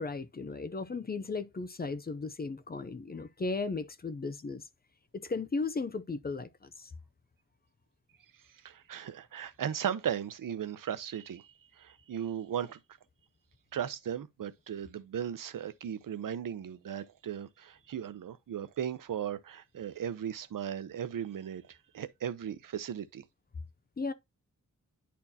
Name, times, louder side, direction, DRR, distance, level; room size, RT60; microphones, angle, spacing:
voice 1, 0.0-4.7 5.1-6.9 24.0-24.1, left 3 dB, 30° left, 0.5 m, -36 dB
voice 2, 8.6-12.8 13.7-23.2, right 9 dB, 85° right, 0.7 m, -37 dB
10.0 x 4.4 x 2.8 m
wide cardioid pair, 170°, 32 cm